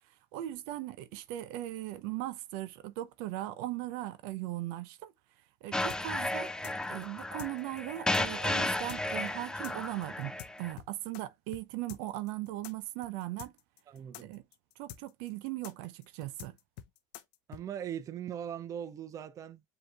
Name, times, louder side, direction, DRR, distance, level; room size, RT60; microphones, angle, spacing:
voice 1, 0.3-5.1 5.6-13.5 14.2-14.4 14.8-16.6, right 15 dB, 70° right, 0.7 m, -39 dB
sound 1, 5.7-10.7, left 2 dB, 10° left, 0.4 m, -34 dB
sound 2, 5.9-11.2 11.5-11.6 11.9-17.6, left 13 dB, 75° left, 0.6 m, -47 dB
voice 2, 13.9-14.3 17.5-19.6, right 9 dB, 35° right, 0.6 m, -40 dB
7.7 x 2.8 x 2.3 m
supercardioid pair, 105°, 9 cm